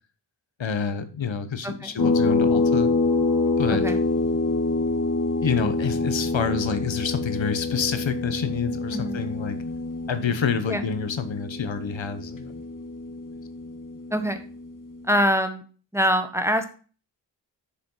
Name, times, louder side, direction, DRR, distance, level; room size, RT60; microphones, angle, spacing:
voice 1, 0.6-2.9 3.6-3.8 5.4-9.6 10.1-12.6, left 6 dB, 90° left, 10 dB, 1.1 m, -28 dB
voice 2, 1.6-2.0 3.7-4.0 8.9-9.2 10.7-10.9 14.1-14.4 15.1-15.6 15.9-16.6, equal, 5° right, 7 dB, 1.2 m, -24 dB
sound 1, 2.0-15.1, left 3 dB, 45° left, 1.4 m, -26 dB
7.0 x 7.0 x 5.5 m, 0.38 s
wide cardioid pair, 65°, 44 cm